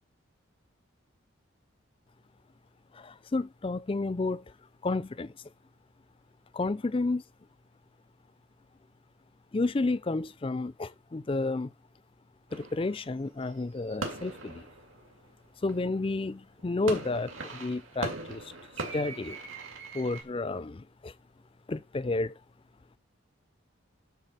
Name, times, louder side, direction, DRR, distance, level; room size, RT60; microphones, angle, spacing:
voice 1, 2.9-4.4 4.8-5.3 6.5-7.2 9.5-11.7 12.5-14.7 15.6-18.5 18.9-19.4 19.9-21.1 21.7-22.3, left 3 dB, 25° left, 0.4 m, -31 dB
sound 1, 12.5-16.1 16.6-20.2, right 3 dB, 80° right, 2.6 m, -40 dB
11.5 x 4.1 x 6.6 m
head